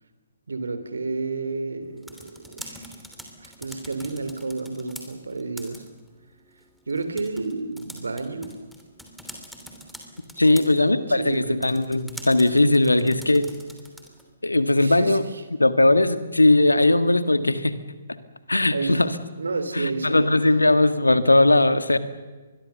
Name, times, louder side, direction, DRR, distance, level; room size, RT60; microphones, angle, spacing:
voice 1, 0.5-3.0 3.4-5.8 6.9-8.5 10.5-10.8 11.1-11.6 12.6-13.2 14.8-15.4 18.7-19.0 19.4-20.2, right 3 dB, 65° right, 10 dB, 3.1 m, -31 dB
sound 1, 1.8-14.3, equal, ahead, 3.0 m, -45 dB
voice 2, 10.4-13.5 14.4-15.2 15.6-17.8 18.5-19.1 19.7-22.0, left 2 dB, 80° left, 12 dB, 1.7 m, -19 dB
25.0 x 21.5 x 6.9 m, 1.3 s
figure-of-eight pair, 125°, 0 cm